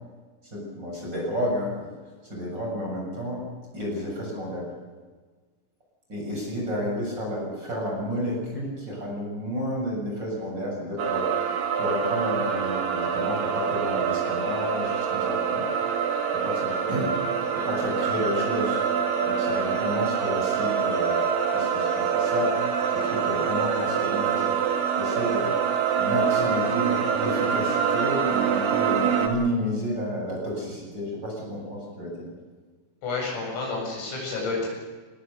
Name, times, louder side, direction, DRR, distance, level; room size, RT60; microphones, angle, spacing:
voice 1, 0.5-1.9 2.3-3.4 3.7-4.7 6.1-15.7 16.4-17.1 17.5-18.8 19.2-21.2 21.5-22.6 22.9-24.6 25.0-25.5 26.0-32.3, equal, 20° right, -2 dB, 7.4 m, -31 dB
sound 1, 11.0-29.3, right 7 dB, 60° right, 3.7 m, -25 dB
voice 2, 33.0-34.7, left 3 dB, 80° left, -1 dB, 10.5 m, -30 dB
25.5 x 20.0 x 6.8 m, 1.4 s
omnidirectional pair, 5.9 m